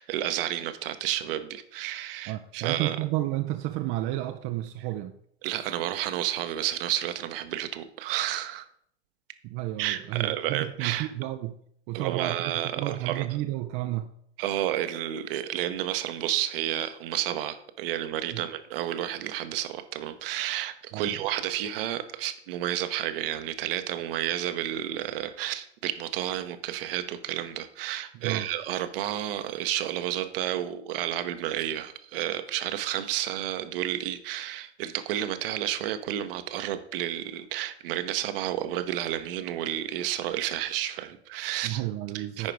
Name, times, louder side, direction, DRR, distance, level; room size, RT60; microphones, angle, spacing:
voice 1, 0.0-3.0 5.4-8.7 9.8-11.1 11.9-13.3 14.4-41.8 42.1-42.5, right 12 dB, 55° right, 10 dB, 1.0 m, -31 dB
voice 2, 2.3-5.2 9.4-11.6 11.9-14.1 18.3-18.4 20.9-21.2 28.1-28.5 41.6-42.5, right 15 dB, 35° right, 7 dB, 0.5 m, -31 dB
9.8 x 4.9 x 4.7 m, 0.68 s
figure-of-eight pair, 85°, 34 cm